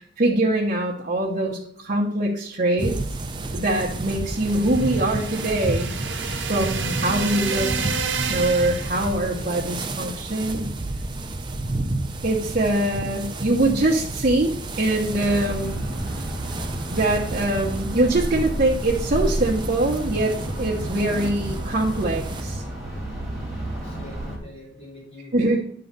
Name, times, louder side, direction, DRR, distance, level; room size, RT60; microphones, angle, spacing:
voice 1, 0.0-3.0 3.5-5.9 6.5-7.7 8.3-10.7 12.2-15.8 16.9-22.6 25.3-25.6, right 1 dB, 40° right, -2 dB, 1.0 m, -23 dB
sound 1, 2.8-22.4, right 2 dB, 25° right, 0.6 m, -31 dB
sound 2, 4.2-9.2, right 5 dB, 75° right, 1.1 m, -30 dB
sound 3, 15.1-24.4, right 1 dB, ahead, 2.5 m, -31 dB
voice 2, 23.6-25.4, left 1 dB, 30° left, -6 dB, 4.0 m, -44 dB
10.0 x 3.8 x 6.7 m, 0.65 s
head